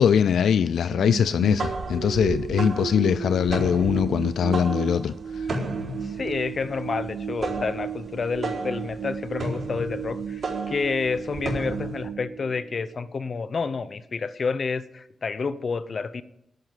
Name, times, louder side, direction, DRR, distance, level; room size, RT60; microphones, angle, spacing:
voice 1, 0.0-5.5, left 8 dB, 80° left, 14 dB, 0.4 m, -22 dB
sound 1, 0.9-13.1, right 7 dB, 85° right, 0.6 m, -34 dB
sound 2, 1.3-12.1, right 2 dB, 50° right, 4.3 m, -34 dB
voice 2, 6.0-16.2, left 4 dB, 50° left, 15 dB, 0.8 m, -29 dB
11.0 x 9.9 x 7.9 m, 0.84 s
cardioid pair, 80°, 0 cm